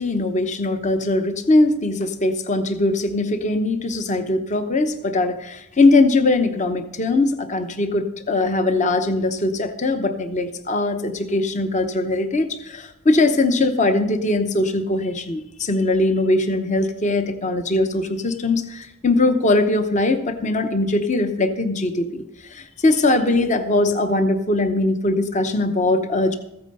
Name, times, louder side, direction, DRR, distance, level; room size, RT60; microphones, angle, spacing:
voice 1, 0.0-26.4, left 2 dB, 35° left, 8 dB, 0.8 m, -21 dB
15.0 x 9.0 x 5.4 m, 0.85 s
head